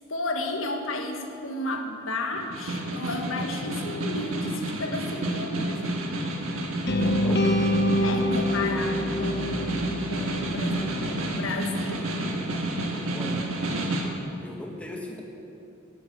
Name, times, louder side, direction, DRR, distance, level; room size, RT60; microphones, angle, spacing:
voice 1, 0.1-6.0 8.0-12.1, left 2 dB, 75° left, 4 dB, 1.4 m, -33 dB
Snare drum, 2.3-14.2, right 1 dB, 85° right, 1.5 m, -30 dB
sound 1, 6.9-10.9, left 1 dB, 55° left, 1.1 m, -26 dB
voice 2, 6.9-7.5 13.1-13.5 14.4-15.2, left 1 dB, 5° left, 0 dB, 1.4 m, -39 dB
11.5 x 8.0 x 8.7 m, 2.8 s
head